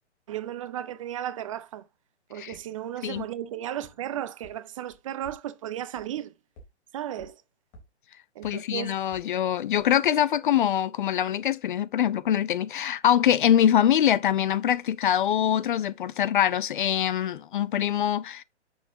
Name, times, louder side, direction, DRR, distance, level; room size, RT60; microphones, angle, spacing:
voice 1, 0.3-1.8 2.3-6.3 6.9-7.4 8.4-9.0, right 11 dB, 30° right, 0.5 m, -35 dB
sound 1, 2.5-2.6 3.1-3.2 3.8-3.9 4.4-4.5 4.9-5.4 5.9-6.0 6.6-6.7 7.2-7.3 7.7-7.8 8.4-8.5 9.1-9.2 9.8-9.9, right 1 dB, 30° left, 3.4 m, -49 dB
voice 2, 8.4-18.4, left 10 dB, 45° left, 0.5 m, -24 dB
9.6 x 6.4 x 2.8 m
figure-of-eight pair, 130°, 35 cm